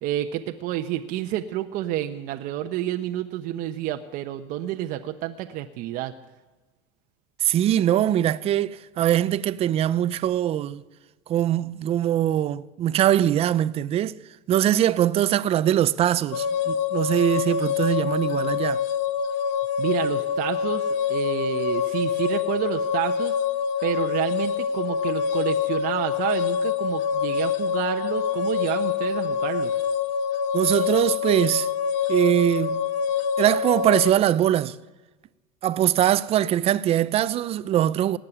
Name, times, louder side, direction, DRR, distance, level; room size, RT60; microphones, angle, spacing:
voice 1, 0.0-6.1 19.8-23.3 23.8-29.8, right 13 dB, 50° right, 0.9 m, -29 dB
voice 2, 7.4-10.8 11.3-14.2 14.5-18.8 30.5-31.7 32.1-32.8 33.4-34.8 35.6-38.2, right 11 dB, 35° right, 0.6 m, -22 dB
sound 1, 16.3-34.1, left 7 dB, 65° left, 1.1 m, -26 dB
18.0 x 7.5 x 9.9 m
supercardioid pair, 125°, 18 cm